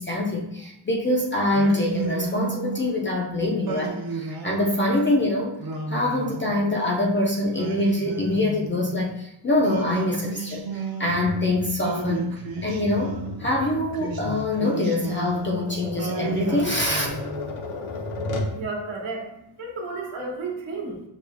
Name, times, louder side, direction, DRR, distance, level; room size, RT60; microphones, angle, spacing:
voice 1, 0.0-5.5 5.9-12.4 12.6-17.2, left 2 dB, 25° left, -1 dB, 0.3 m, -24 dB
Singing, 1.5-3.0 3.6-5.0 5.6-6.9 7.5-9.1 9.6-11.4 11.8-13.4 13.9-15.6 16.0-17.6, right 5 dB, 50° right, 0.6 m, -33 dB
Tap, 11.1-18.6, left 2 dB, 80° left, 0.8 m, -35 dB
voice 2, 18.5-19.3 19.6-21.0, right 3 dB, 75° right, 0 dB, 1.1 m, -32 dB
6.4 x 2.8 x 2.5 m, 0.82 s
wide cardioid pair, 180°, 49 cm